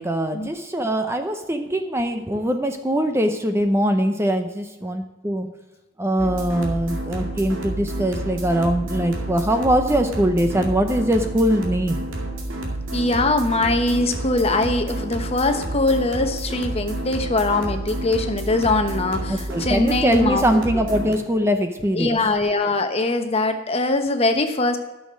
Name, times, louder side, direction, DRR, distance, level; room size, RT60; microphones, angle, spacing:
voice 1, 0.0-5.5 6.0-12.1 19.3-22.2, equal, 15° right, 6 dB, 0.6 m, -22 dB
sound 1, 6.2-21.2, right 1 dB, 75° right, 2.3 m, -29 dB
voice 2, 12.9-20.8 21.9-24.8, left 2 dB, 30° left, 7 dB, 1.0 m, -22 dB
12.5 x 6.5 x 6.2 m, 1.1 s
head